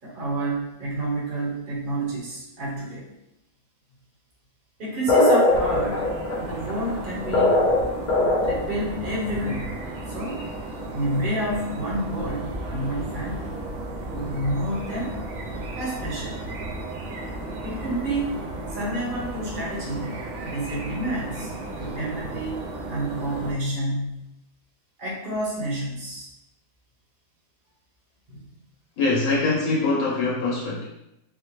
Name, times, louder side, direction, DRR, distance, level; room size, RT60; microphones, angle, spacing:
voice 1, 0.0-3.0 4.8-6.1 6.4-7.6 8.4-9.7 10.1-10.4 10.9-13.6 13.9-15.1 15.8-16.4 17.6-18.4 18.7-21.5 21.8-22.6 22.9-24.2 25.0-26.3 28.3-28.4, right 1 dB, 40° right, -6 dB, 1.1 m, -29 dB
sound 1, 5.1-8.8, left 2 dB, 60° left, 0.5 m, -20 dB
sound 2, 5.5-23.5, right 2 dB, 65° right, 0.9 m, -34 dB
voice 2, 29.0-30.8, left 3 dB, 85° left, -4 dB, 1.2 m, -23 dB
3.7 x 2.1 x 3.0 m, 0.86 s
omnidirectional pair, 1.5 m